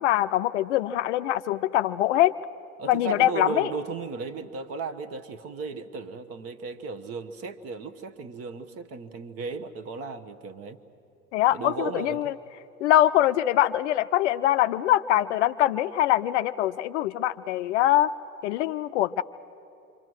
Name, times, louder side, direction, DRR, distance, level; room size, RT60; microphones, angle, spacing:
voice 1, 0.0-2.3 2.9-3.7 11.3-12.3 12.8-18.1 18.4-19.2, left 13 dB, 50° left, 12 dB, 0.5 m, -23 dB
voice 2, 2.8-10.8 11.5-12.2, right 4 dB, 30° right, 12 dB, 1.1 m, -35 dB
27.5 x 25.0 x 6.3 m, 2.7 s
figure-of-eight pair, 85°, 45 cm